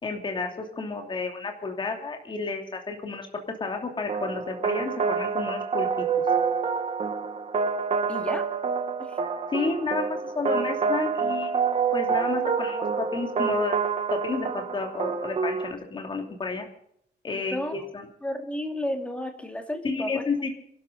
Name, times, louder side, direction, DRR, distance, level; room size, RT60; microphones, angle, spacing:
voice 1, 0.0-5.9 9.5-13.8 14.1-16.7 17.2-18.0 19.8-20.5, left 4 dB, 25° left, 3 dB, 2.9 m, -31 dB
sound 1, 4.1-15.7, right 5 dB, 35° right, 1.4 m, -27 dB
voice 2, 8.1-8.5 9.0-9.2 17.3-17.9 18.2-20.2, left 1 dB, 5° left, 5 dB, 2.2 m, -32 dB
27.0 x 12.0 x 4.0 m, 0.71 s
wide cardioid pair, 170°, 18 cm